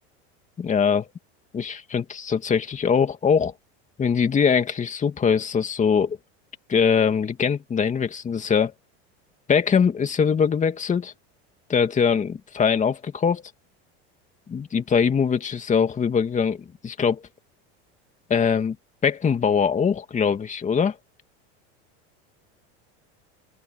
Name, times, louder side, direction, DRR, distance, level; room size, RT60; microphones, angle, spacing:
voice 1, 0.6-1.1 1.5-3.5 4.0-6.2 6.7-8.7 9.5-11.1 11.7-13.4 14.5-17.2 18.3-18.8 19.0-21.0, left 6 dB, 20° left, 2.4 m, -22 dB
open air
supercardioid pair, 130°, 33 cm